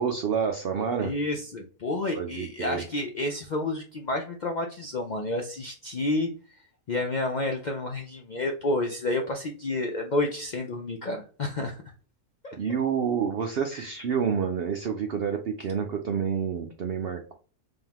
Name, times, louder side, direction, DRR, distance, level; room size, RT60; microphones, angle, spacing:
voice 1, 0.0-1.1 2.1-2.8 12.5-17.3, right 7 dB, 65° right, 4 dB, 0.6 m, -28 dB
voice 2, 1.0-6.3 6.9-11.8 12.4-12.6 13.7-13.9, left 2 dB, 90° left, 2 dB, 0.4 m, -30 dB
3.7 x 3.5 x 2.8 m, 0.38 s
omnidirectional pair, 1.5 m